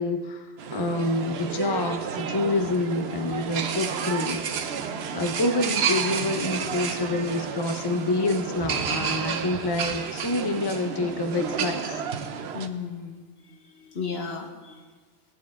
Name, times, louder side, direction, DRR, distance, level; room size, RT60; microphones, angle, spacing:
voice 1, 0.0-4.9 5.1-12.0, left 2 dB, 25° left, 5 dB, 0.7 m, -27 dB
sound 1, 0.6-12.7, right 7 dB, 75° right, 0.9 m, -31 dB
voice 2, 12.5-13.2 13.4-14.8, left 5 dB, 70° left, 2 dB, 1.5 m, -35 dB
18.0 x 8.9 x 3.6 m, 1.4 s
omnidirectional pair, 1.1 m